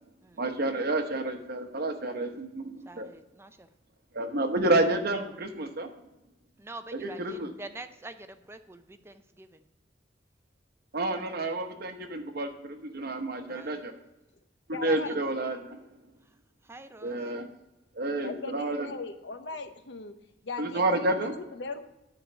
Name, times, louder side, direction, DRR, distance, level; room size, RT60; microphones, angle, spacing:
voice 1, 0.4-3.1 4.1-5.9 6.9-7.5 10.9-13.9 14.8-15.8 17.0-17.4 18.0-18.9 20.6-21.4, right 2 dB, 60° right, 6 dB, 1.0 m, -29 dB
voice 2, 2.9-3.7 6.6-9.5 13.5-13.8 14.8-15.2 16.7-17.2, right 2 dB, 15° right, 9 dB, 0.5 m, -45 dB
voice 3, 14.7-15.2 18.2-20.1 20.4-21.8, left 4 dB, 70° left, 8 dB, 0.8 m, -39 dB
10.0 x 3.9 x 7.0 m, 0.95 s
head